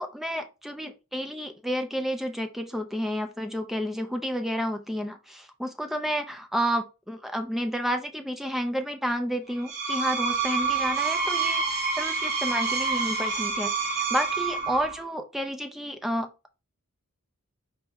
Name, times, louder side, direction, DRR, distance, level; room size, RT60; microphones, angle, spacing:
voice 1, 0.0-16.5, equal, ahead, 6 dB, 0.4 m, -31 dB
Screech, 9.5-15.0, right 5 dB, 50° right, 1.6 m, -27 dB
4.5 x 2.7 x 3.5 m, 0.29 s
head